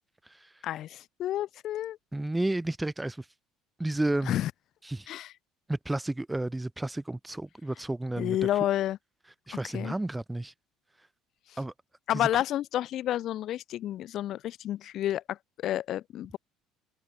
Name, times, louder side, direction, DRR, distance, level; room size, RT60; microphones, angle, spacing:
voice 1, 0.6-2.0 4.3-4.5 5.1-5.3 8.2-9.0 9.7-9.9 12.1-16.4, left 12 dB, 45° left, 1.3 m, -30 dB
voice 2, 2.1-3.2 3.8-4.3 4.8-5.1 5.7-8.4 9.5-10.5 11.6-11.7 12.1-12.4, right 2 dB, 5° right, 1.1 m, -32 dB
open air
cardioid pair, 160°, 0 cm